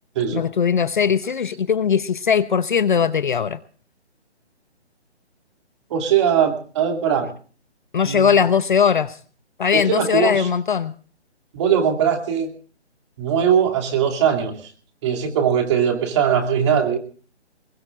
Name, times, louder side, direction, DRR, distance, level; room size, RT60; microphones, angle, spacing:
voice 1, 0.3-3.6 7.9-9.2 9.6-10.9, left 7 dB, 45° left, 13 dB, 0.9 m, -19 dB
voice 2, 5.9-7.3 8.0-8.4 9.7-10.5 11.5-12.5 13.2-14.6 15.0-17.0, right 8 dB, 25° right, 4 dB, 2.8 m, -20 dB
22.5 x 21.5 x 2.5 m, 0.41 s
hypercardioid pair, 160°, 34 cm